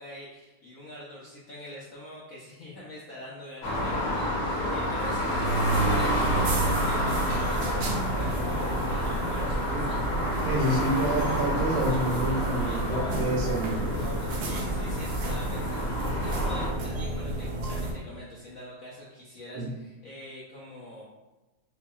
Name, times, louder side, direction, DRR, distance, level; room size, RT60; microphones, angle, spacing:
voice 1, 0.0-10.0 12.2-12.9 14.3-21.0, left 1 dB, 85° left, -6 dB, 0.7 m, -44 dB
sound 1, 3.6-16.7, equal, 65° left, 1.1 m, -29 dB
sound 2, 5.4-17.9, right 2 dB, 70° right, 1.3 m, -31 dB
voice 2, 10.5-14.3 19.5-19.7, right 1 dB, 90° right, -3 dB, 1.5 m, -29 dB
5.6 x 2.2 x 2.3 m, 1.1 s
omnidirectional pair, 2.3 m